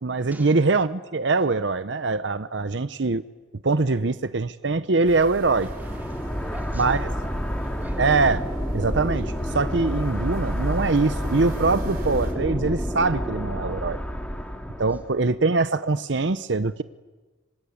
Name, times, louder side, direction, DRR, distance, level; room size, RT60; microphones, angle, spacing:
voice 1, 0.0-3.2 3.6-5.7 6.7-7.0 8.0-8.4 8.7-14.0 14.8-16.8, right 3 dB, 65° right, 13 dB, 0.8 m, -23 dB
sound 1, 5.1-12.3, right 1 dB, 50° right, 4.5 m, -40 dB
sound 2, 5.3-15.2, equal, 5° left, 2.3 m, -29 dB
voice 2, 5.4-8.0 14.8-15.1, right 1 dB, 10° right, 2 dB, 3.2 m, -44 dB
26.0 x 26.0 x 8.7 m, 1.3 s
head